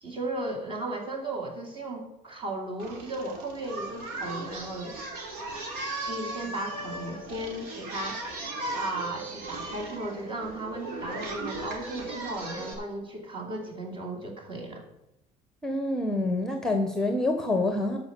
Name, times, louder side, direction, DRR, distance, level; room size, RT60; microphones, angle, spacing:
voice 1, 0.0-5.0 6.0-8.2 8.7-14.8, right 2 dB, 35° right, 1 dB, 2.7 m, -35 dB
Singing, 2.8-12.7, right 2 dB, 80° right, 2.9 m, -37 dB
voice 2, 15.6-18.0, left 2 dB, 5° left, 6 dB, 1.0 m, -27 dB
13.0 x 5.3 x 6.8 m, 0.93 s
cardioid pair, 135°, 15 cm